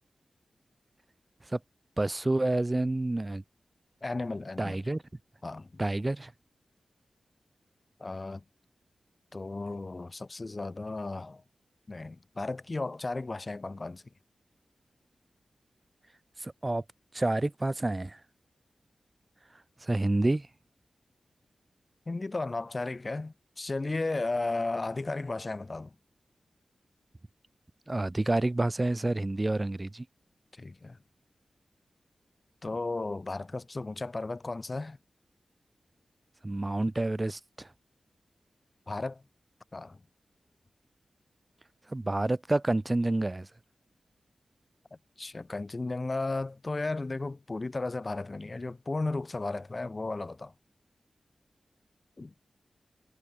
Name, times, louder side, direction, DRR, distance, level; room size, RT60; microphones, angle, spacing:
voice 1, 2.0-3.4 4.6-5.0 5.8-6.3 16.4-16.8 17.1-18.2 19.8-20.5 27.9-30.0 36.4-37.7 41.9-43.5, right 2 dB, 20° right, 1.1 m, -28 dB
voice 2, 4.0-4.8 5.4-5.8 8.0-8.4 9.3-11.4 11.9-14.0 22.1-25.9 30.5-31.0 32.6-35.0 38.9-39.2 39.7-40.0 45.2-50.5 52.2-52.3, left 3 dB, 30° left, 0.5 m, -34 dB
wide cardioid pair, 115°, 0 cm